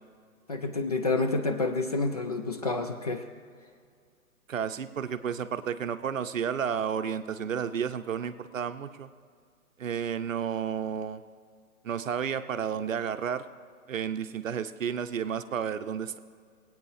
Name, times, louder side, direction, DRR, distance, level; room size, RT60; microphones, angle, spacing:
voice 1, 0.5-3.2, left 3 dB, 30° left, 5 dB, 0.4 m, -29 dB
voice 2, 4.5-9.1 9.8-11.2 11.8-13.4 13.9-16.2, right 7 dB, 60° right, 11 dB, 0.7 m, -32 dB
20.0 x 8.8 x 3.2 m, 2.1 s
figure-of-eight pair, 125°, 44 cm